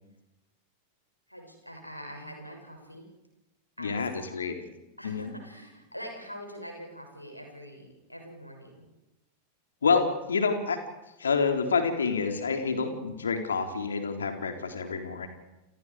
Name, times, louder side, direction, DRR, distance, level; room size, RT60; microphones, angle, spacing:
voice 1, 1.3-3.1 3.8-4.1 4.5-4.7 5.0-8.9, equal, 90° left, 3 dB, 6.8 m, -44 dB
voice 2, 3.8-4.5 5.0-5.3 9.8-10.8 11.2-15.3, left 5 dB, 70° left, 5 dB, 3.5 m, -28 dB
29.0 x 28.5 x 4.9 m, 1.0 s
figure-of-eight pair, 90°, 0 cm